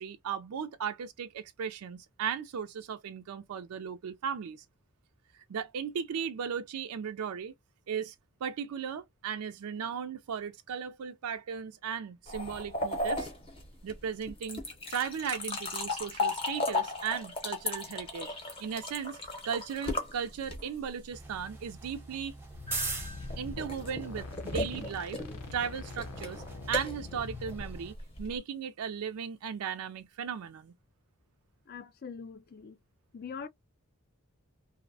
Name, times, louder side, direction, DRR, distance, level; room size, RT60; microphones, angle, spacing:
voice 1, 0.0-4.6 5.5-7.5 7.9-8.1 8.4-13.3 13.8-14.6 14.9-18.3 18.6-19.2 19.4-22.3 23.4-25.2 25.5-30.7, right 7 dB, 80° right, 0.4 m, -36 dB
sound 1, 12.3-20.9 22.7-28.4, left 2 dB, 25° left, 0.7 m, -36 dB
sound 2, 21.1-27.9, right 3 dB, 10° right, 0.6 m, -43 dB
sound 3, 22.5-27.6, left 5 dB, 85° left, 0.6 m, -45 dB
voice 2, 31.7-32.8 33.1-33.5, left 6 dB, 45° left, 0.3 m, -43 dB
2.6 x 2.0 x 2.6 m
head